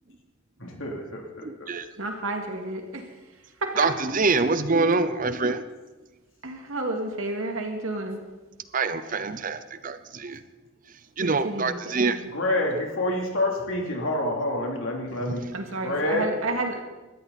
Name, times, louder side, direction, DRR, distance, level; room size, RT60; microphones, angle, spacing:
voice 1, 0.6-1.7 12.3-15.5 15.8-16.3, left 1 dB, 75° left, 0 dB, 3.3 m, -28 dB
voice 2, 1.4-1.9 3.8-5.7 8.7-10.4 11.2-12.2, right 3 dB, 40° right, 12 dB, 0.7 m, -25 dB
voice 3, 2.0-3.0 3.6-3.7 6.4-8.2 11.2-12.3 15.5-16.8, right 2 dB, 85° right, 3 dB, 2.3 m, -31 dB
18.5 x 13.0 x 4.2 m, 1.2 s
head